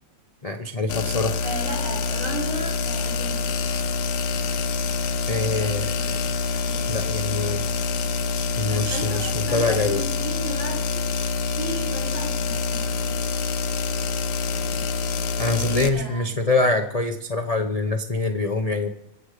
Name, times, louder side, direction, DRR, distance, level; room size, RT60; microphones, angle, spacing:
voice 1, 0.4-1.4 5.3-6.2 6.9-7.6 8.6-10.0 15.4-18.9, left 3 dB, 70° left, 5 dB, 0.3 m, -25 dB
sound 1, 0.9-15.9, left 4 dB, 90° left, 1.6 m, -26 dB
voice 2, 1.4-3.5 5.5-11.1 11.5-13.3 15.4-16.4, right 1 dB, 85° right, -3 dB, 6.3 m, -36 dB
23.0 x 7.9 x 4.9 m, 0.79 s
omnidirectional pair, 2.0 m